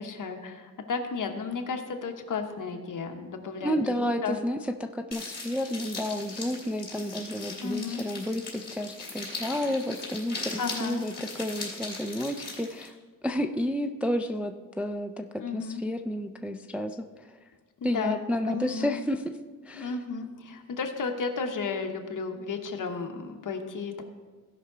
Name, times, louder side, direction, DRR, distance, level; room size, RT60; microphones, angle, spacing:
voice 1, 0.0-4.4 7.6-8.0 10.6-11.0 15.4-15.8 17.8-18.2 18.5-19.0 19.7-24.0, left 5 dB, 65° left, 4 dB, 1.1 m, -33 dB
voice 2, 3.6-12.9 13.2-17.4 17.8-19.4 19.7-19.9, equal, 5° right, 5 dB, 0.3 m, -31 dB
sound 1, 5.1-12.9, left 3 dB, 30° left, 3.2 m, -39 dB
16.5 x 5.6 x 3.8 m, 1.4 s
wide cardioid pair, 155°, 34 cm